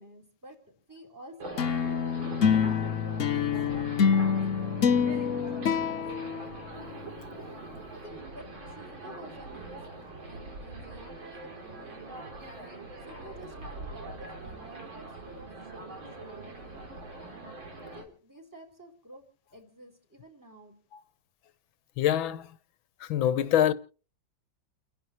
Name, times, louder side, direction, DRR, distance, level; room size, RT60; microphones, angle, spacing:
voice 1, 0.0-5.9 6.2-6.5 8.0-12.0 12.6-17.4 17.8-19.2 19.5-20.8, equal, 10° right, 4.0 m, -51 dB
sound 1, 1.4-18.0, right 3 dB, 80° right, 4.3 m, -43 dB
sound 2, 1.6-7.2, left 7 dB, 50° left, 1.1 m, -26 dB
voice 2, 22.0-22.5 23.0-23.7, left 11 dB, 90° left, 1.8 m, -25 dB
30.0 x 11.0 x 3.1 m
omnidirectional pair, 2.1 m